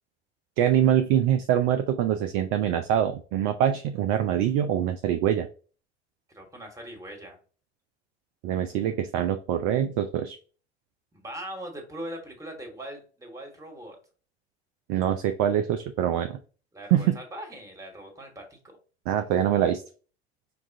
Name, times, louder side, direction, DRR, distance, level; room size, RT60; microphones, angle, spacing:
voice 1, 0.6-5.5 8.4-10.4 14.9-16.4 16.9-17.2 19.1-19.8, right 10 dB, 40° right, 9 dB, 0.4 m, -24 dB
voice 2, 6.3-7.4 11.1-14.0 16.7-18.8, right 1 dB, 10° right, 2 dB, 1.3 m, -40 dB
5.4 x 2.4 x 2.6 m, 0.38 s
figure-of-eight pair, 70°, 33 cm